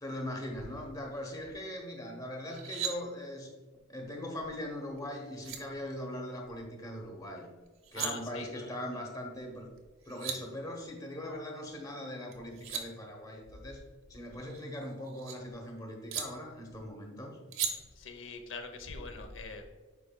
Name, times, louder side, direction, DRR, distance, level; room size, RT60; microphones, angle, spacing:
voice 1, 0.0-3.5 3.9-7.5 7.9-9.7 10.1-13.8 14.1-17.4, left 1 dB, 20° left, 2 dB, 0.9 m, -40 dB
sound 1, 2.4-2.9 5.0-5.1 5.4-5.6 7.7-8.1 9.8-9.9 10.0-10.4 12.3-12.8 14.3-15.4 16.1-16.2 17.5-17.7, right 8 dB, 75° right, 0.7 m, -36 dB
voice 2, 7.9-8.5 17.9-19.7, left 3 dB, 60° left, 6 dB, 0.7 m, -42 dB
8.3 x 5.3 x 2.2 m, 1.3 s
head